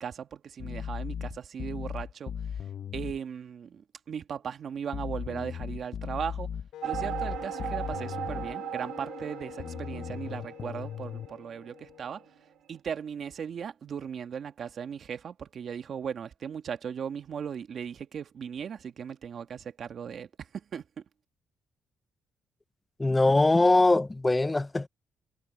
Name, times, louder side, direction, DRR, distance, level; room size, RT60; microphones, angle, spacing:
voice 1, 0.0-2.3 2.9-6.5 6.8-12.2 12.7-20.8, right 7 dB, 55° right, 1.7 m, -37 dB
sound 1, 0.6-3.2 4.9-8.5 9.6-11.3, left 8 dB, 55° left, 0.8 m, -37 dB
Wind instrument woodwind instrument, 6.7-12.6, left 12 dB, 85° left, 3.7 m, -46 dB
sound 2, 6.8-12.4, right 11 dB, 80° right, 4.1 m, -38 dB
voice 2, 23.0-24.9, left 2 dB, 15° left, 0.4 m, -22 dB
cardioid pair, 90°, 0 cm